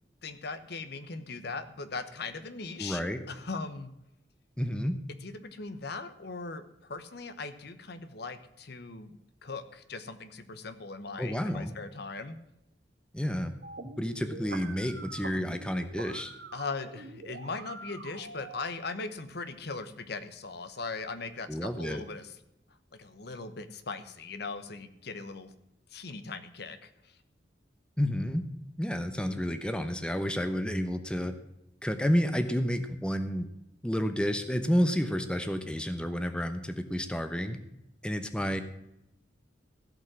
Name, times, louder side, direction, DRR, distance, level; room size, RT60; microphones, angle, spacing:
voice 1, 0.2-3.0 3.3-3.9 5.2-12.4 16.5-22.4 22.9-25.5 25.9-27.1, left 3 dB, 65° left, 10 dB, 1.0 m, -39 dB
voice 2, 2.8-3.2 4.6-4.9 11.2-11.7 13.1-13.5 14.0-16.3 21.5-22.0 28.0-28.4 28.8-31.3 31.8-33.5 33.8-37.6 38.0-38.6, equal, 5° left, 8 dB, 0.9 m, -30 dB
sound 1, 13.6-18.6, right 3 dB, 70° right, 1.6 m, -45 dB
16.0 x 5.5 x 7.5 m, 0.84 s
head